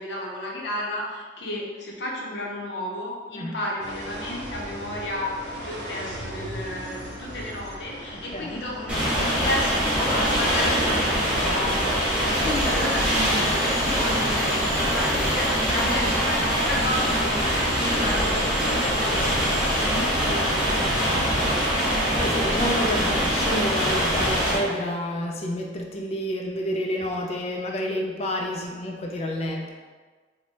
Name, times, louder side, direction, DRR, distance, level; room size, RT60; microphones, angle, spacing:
voice 1, 0.0-21.8, left 1 dB, 70° left, -2 dB, 0.7 m, -33 dB
sound 1, 3.8-21.7, right 1 dB, 75° right, 0.7 m, -39 dB
voice 2, 8.3-8.6 22.2-29.7, left 1 dB, 35° left, 1 dB, 0.3 m, -29 dB
sound 2, 8.9-24.6, equal, 5° right, 1.0 m, -23 dB
Tools, 12.3-19.8, equal, 50° right, 1.4 m, -36 dB
4.3 x 2.1 x 2.8 m, 1.4 s
head